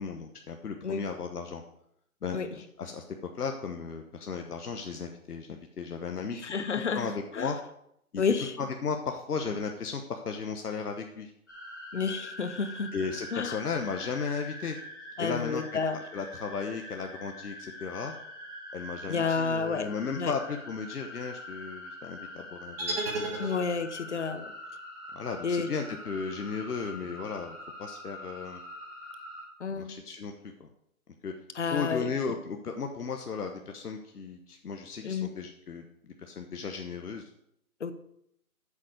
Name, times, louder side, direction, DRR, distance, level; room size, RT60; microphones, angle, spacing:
voice 1, 0.0-1.6 2.2-3.0 3.3-7.6 8.1-8.2 8.6-11.3 12.9-14.8 15.2-15.6 16.1-18.1 18.7-23.0 23.4-23.5 25.1-28.6 29.7-30.7 31.2-31.3 31.6-37.2, left 5 dB, 85° left, 4 dB, 1.1 m, -35 dB
voice 2, 6.3-7.5 8.2-8.6 11.9-12.9 13.3-13.6 15.2-16.0 19.1-19.9 20.2-20.3 23.4-24.5 25.4-25.7 29.6-29.9 31.5-32.1 35.0-35.3 37.8-37.9, left 5 dB, 50° left, 11 dB, 0.9 m, -30 dB
sound 1, 11.5-29.4, left 1 dB, 15° left, 0.8 m, -44 dB
sound 2, 22.8-24.1, right 2 dB, 40° right, 2.5 m, -33 dB
8.4 x 7.5 x 4.9 m, 0.73 s
hypercardioid pair, 170°, 44 cm